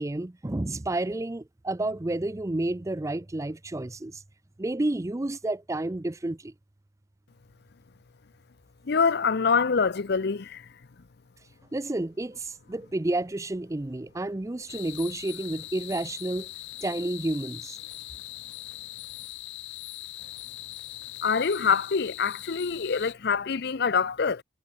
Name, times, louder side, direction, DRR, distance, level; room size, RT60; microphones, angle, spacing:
voice 1, 0.0-4.2 4.6-6.5 11.7-16.5 16.8-17.8, right 2 dB, 15° right, 0.5 m, -30 dB
voice 2, 8.9-10.6 21.2-24.4, left 5 dB, 55° left, 0.6 m, -25 dB
sound 1, 14.7-23.1, left 16 dB, 75° left, 1.0 m, -41 dB
head